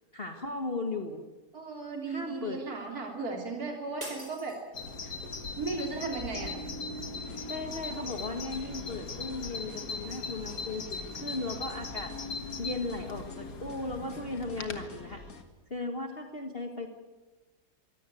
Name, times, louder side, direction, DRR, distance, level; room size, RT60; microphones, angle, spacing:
voice 1, 0.1-1.2 2.1-2.6 7.5-12.1 12.6-15.2 15.7-16.9, left 2 dB, 35° left, 4 dB, 1.8 m, -36 dB
voice 2, 1.5-4.6 5.0-5.1 5.6-6.6, right 4 dB, 60° right, 2 dB, 3.8 m, -36 dB
sound 1, 4.0-5.3, right 1 dB, 35° right, 4.4 m, -44 dB
Bird vocalization bird call bird song, 4.7-14.9, left 3 dB, 70° left, 2.3 m, -39 dB
sound 2, 7.2-15.4, left 3 dB, 55° left, 2.7 m, -49 dB
24.0 x 17.0 x 9.5 m, 1.2 s
omnidirectional pair, 1.8 m